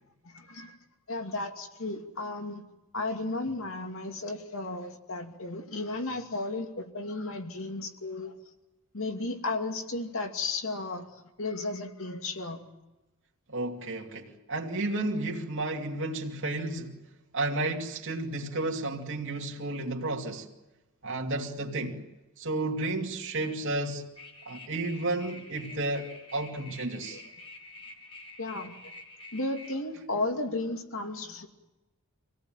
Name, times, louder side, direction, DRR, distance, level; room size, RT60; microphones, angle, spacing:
voice 1, 0.2-0.8 1.1-2.6 2.9-8.3 8.9-11.1 11.4-12.6 26.9-27.2 28.4-28.7 29.3-31.5, left 2 dB, 65° left, 2.6 m, -34 dB
voice 2, 13.5-17.0 17.3-20.5 21.0-22.0 22.4-24.0 24.5-27.2, right 2 dB, 60° right, 2.7 m, -32 dB
sound 1, 24.2-29.7, left 2 dB, 25° left, 2.2 m, -48 dB
27.0 x 17.5 x 9.1 m
head